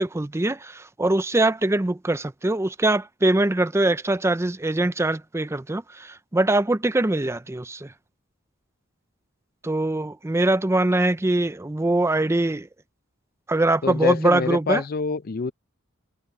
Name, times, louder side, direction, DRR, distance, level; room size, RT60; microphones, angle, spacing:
voice 1, 0.0-7.9 9.6-12.7 13.5-14.8, right 2 dB, 15° right, 0.5 m, -23 dB
voice 2, 13.8-15.5, left 5 dB, 45° left, 0.5 m, -26 dB
head